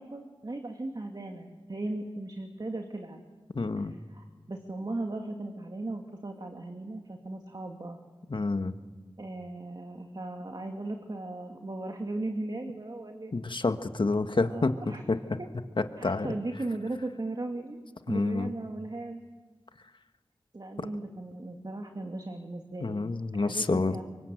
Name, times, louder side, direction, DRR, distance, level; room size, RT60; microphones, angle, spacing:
voice 1, 0.0-3.2 3.8-8.0 9.2-13.3 14.5-15.0 15.4-15.5 16.0-17.8 18.1-19.2 20.5-23.0 23.3-24.0, right 2 dB, 50° right, 3 dB, 2.5 m, -37 dB
voice 2, 3.5-3.9 8.3-8.7 13.3-15.2 16.0-16.3 18.1-18.5 22.8-24.0, left 3 dB, 60° left, 8 dB, 1.5 m, -28 dB
27.5 x 24.0 x 8.0 m, 1.3 s
wide cardioid pair, 50°, 9 cm